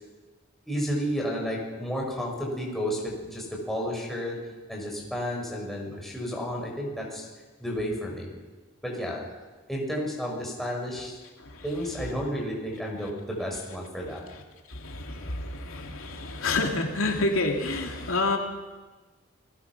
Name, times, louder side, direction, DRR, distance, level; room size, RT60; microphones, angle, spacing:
voice 1, 0.7-4.4 4.7-7.3 7.6-8.3 8.8-9.3 9.7-11.2 11.6-14.2, equal, ahead, -2 dB, 5.5 m, -32 dB
voice 2, 11.4-12.0 13.0-13.1 14.0-14.4 14.7-18.4, left 2 dB, 75° left, 2 dB, 2.7 m, -29 dB
28.5 x 19.5 x 6.1 m, 1.3 s
head